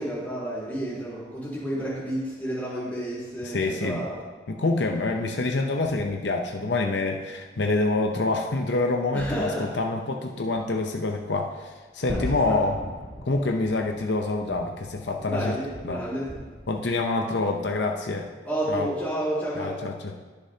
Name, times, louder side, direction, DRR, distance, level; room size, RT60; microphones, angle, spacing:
voice 1, 0.0-4.1 9.1-9.7 12.1-12.6 15.2-16.3 18.4-19.8, right 1 dB, 10° left, -8 dB, 3.6 m, -31 dB
voice 2, 3.4-4.1 4.5-12.8 13.2-15.6 15.8-16.0 16.7-18.3 18.7-18.9 19.6-20.2, left 2 dB, 70° left, 2 dB, 0.7 m, -26 dB
Gunshot gunfire / Fireworks / Boom, 12.1-16.9, equal, 70° right, 2.4 m, -38 dB
20.5 x 6.8 x 2.8 m, 1.3 s
head